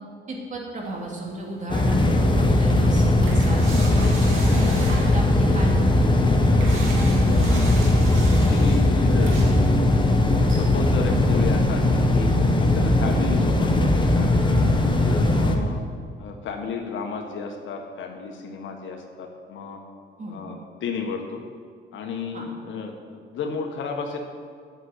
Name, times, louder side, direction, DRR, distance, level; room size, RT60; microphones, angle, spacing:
voice 1, 0.3-6.5 15.2-15.4 20.2-20.3 22.3-22.4, right 2 dB, 40° right, -1 dB, 2.9 m, -34 dB
sound 1, 0.8-11.3, right 2 dB, 80° right, 2.4 m, -40 dB
sound 2, 1.7-15.6, left 1 dB, 25° left, 1.3 m, -19 dB
voice 2, 7.3-7.7 8.3-9.6 10.5-12.3 12.6-14.5 15.0-15.8 16.2-19.8 20.3-21.4 21.9-24.2, left 5 dB, 75° left, 3 dB, 1.5 m, -33 dB
9.2 x 7.1 x 7.9 m, 2.1 s
cardioid pair, 90°, 20 cm